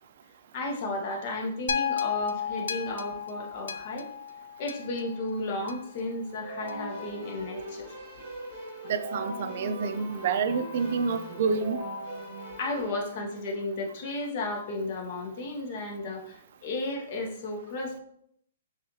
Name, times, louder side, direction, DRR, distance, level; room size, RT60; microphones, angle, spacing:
voice 1, 0.5-4.1 4.6-7.9 12.6-18.0, left 2 dB, 35° left, 1 dB, 0.8 m, -33 dB
sound 1, 1.7-6.0 6.7-6.8, left 7 dB, 85° left, 0.4 m, -33 dB
Keyboard (musical), 6.4-12.9, equal, 10° right, 1.3 m, -39 dB
voice 2, 8.9-11.8, right 5 dB, 45° right, 9 dB, 0.4 m, -28 dB
5.6 x 2.4 x 2.8 m, 0.69 s
hypercardioid pair, 165°, 0 cm